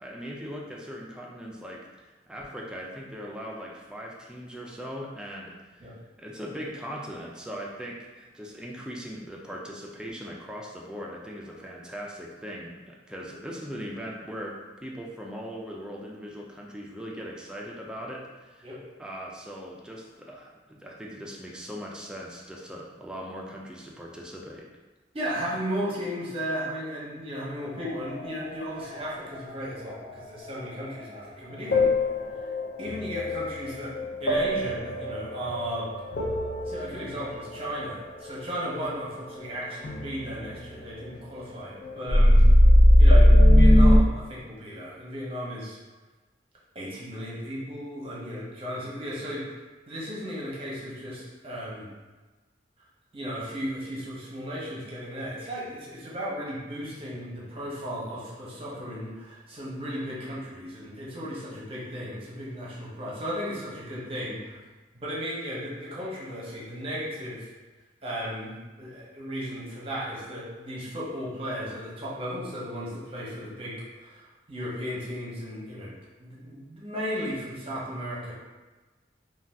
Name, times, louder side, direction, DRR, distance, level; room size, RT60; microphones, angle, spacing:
voice 1, 0.0-5.5 6.2-18.7 19.0-24.7, equal, 5° right, -2 dB, 0.3 m, -39 dB
voice 2, 25.1-32.5 32.8-35.9 36.7-42.4 43.0-43.3 43.5-45.8 46.7-51.9 53.1-64.6 64.9-67.5 68.0-75.9 76.2-78.3, equal, 30° right, -6 dB, 0.8 m, -35 dB
sound 1, 27.8-29.4 29.9-30.4 31.0-31.1 31.7-39.4 39.7-41.4 41.8-44.0, left 1 dB, 60° left, 0.4 m, -20 dB
2.6 x 2.3 x 3.3 m, 1.2 s
head